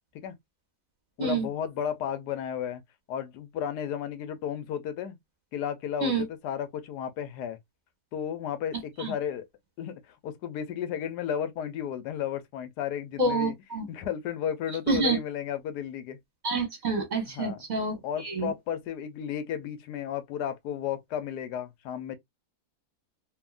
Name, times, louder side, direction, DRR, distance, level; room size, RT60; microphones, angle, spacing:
voice 1, 1.2-2.8 3.1-5.2 5.5-7.6 8.1-9.5 9.8-13.5 13.9-16.2 17.3-17.6 18.0-22.2, left 9 dB, 85° left, 1.2 m, -33 dB
voice 2, 13.2-13.9 14.9-15.2 16.4-18.5, right 3 dB, 30° right, 1.1 m, -28 dB
2.8 x 2.7 x 2.3 m
omnidirectional pair, 1.7 m